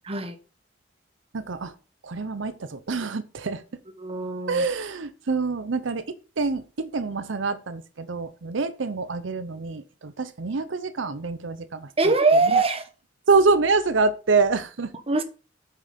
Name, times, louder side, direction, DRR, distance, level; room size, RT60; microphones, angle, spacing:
voice 1, 0.0-0.4 4.0-4.6 12.0-12.8 15.1-15.2, right 3 dB, 30° right, 1.1 m, -22 dB
voice 2, 1.3-1.7 2.0-3.6 4.5-12.1 12.5-12.6 13.3-14.9, right 4 dB, 80° right, 0.7 m, -26 dB
8.4 x 6.3 x 5.1 m
head